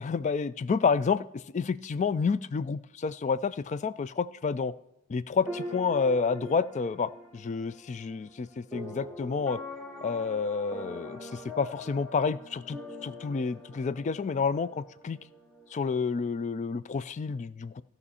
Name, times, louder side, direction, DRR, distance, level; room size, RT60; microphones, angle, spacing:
voice 1, 0.0-4.7 5.1-9.6 10.0-15.2 15.7-17.8, left 5 dB, 30° left, 17 dB, 0.3 m, -29 dB
sound 1, 5.4-16.4, equal, 5° left, 1.2 m, -43 dB
16.0 x 5.4 x 4.2 m, 0.87 s
head